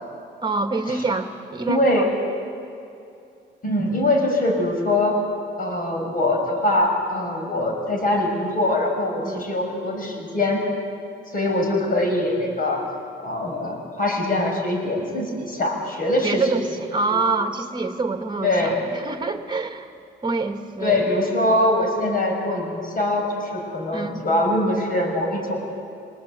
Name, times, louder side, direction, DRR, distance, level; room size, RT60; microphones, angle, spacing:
voice 1, 0.4-2.1 9.2-9.5 16.2-19.9 20.2-21.0 23.9-24.2, right 3 dB, 20° right, 6 dB, 1.9 m, -26 dB
voice 2, 1.7-2.1 3.6-5.2 5.6-10.6 11.3-12.8 13.2-16.4 17.1-17.2 18.4-18.8 20.8-25.6, left 1 dB, 45° left, 2 dB, 6.6 m, -23 dB
24.5 x 20.0 x 8.3 m, 2.6 s
cardioid pair, 90°, 20 cm